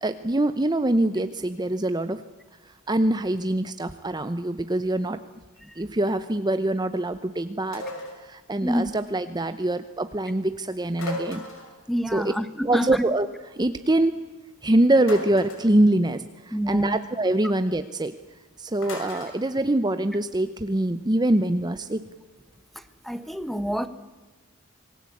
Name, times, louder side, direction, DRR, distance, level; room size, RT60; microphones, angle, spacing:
voice 1, 0.0-2.2 2.9-5.2 5.8-7.8 8.2-11.4 12.1-12.3 12.6-13.3 13.5-14.2 14.6-18.1 18.6-22.0, right 1 dB, 20° right, 10 dB, 0.8 m, -24 dB
sound 1, 7.7-8.2 10.9-11.8 15.0-15.7 18.8-19.4, left 2 dB, 65° left, 5.8 m, -36 dB
voice 2, 11.9-13.0 16.5-17.0 22.7-23.9, equal, ahead, 12 dB, 1.2 m, -28 dB
27.0 x 19.5 x 8.5 m, 1.3 s
head